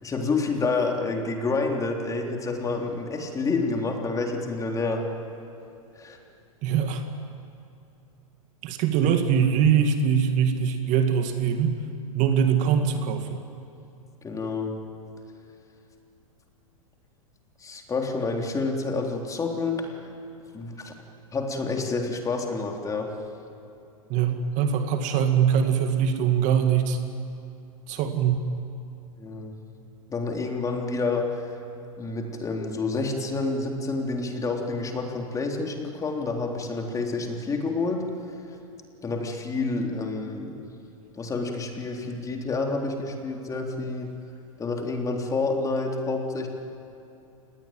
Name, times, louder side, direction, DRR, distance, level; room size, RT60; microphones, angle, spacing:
voice 1, 0.0-5.0 6.0-6.2 14.2-14.8 17.6-19.9 20.5-20.9 21.3-23.1 29.2-29.5 30.1-31.4 32.0-38.0 39.0-40.6 41.2-44.1 44.6-46.5, left 3 dB, 20° left, 2 dB, 3.6 m, -28 dB
voice 2, 6.6-7.0 8.6-11.8 12.1-13.4 24.1-27.0 27.9-28.5, right 7 dB, 40° right, 6 dB, 2.2 m, -22 dB
28.0 x 19.5 x 9.2 m, 2.7 s
hypercardioid pair, 110°, 18 cm